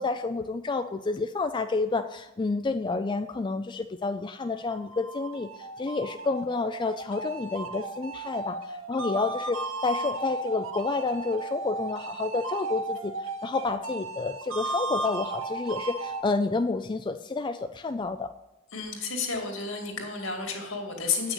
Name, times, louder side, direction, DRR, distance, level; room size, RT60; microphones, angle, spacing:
voice 1, 0.0-18.3, left 3 dB, 25° left, 8 dB, 0.4 m, -30 dB
sound 1, 4.4-16.2, right 2 dB, 85° right, 1.1 m, -35 dB
voice 2, 18.7-21.3, left 4 dB, 75° left, 2 dB, 2.3 m, -31 dB
8.2 x 6.2 x 8.0 m, 0.90 s
head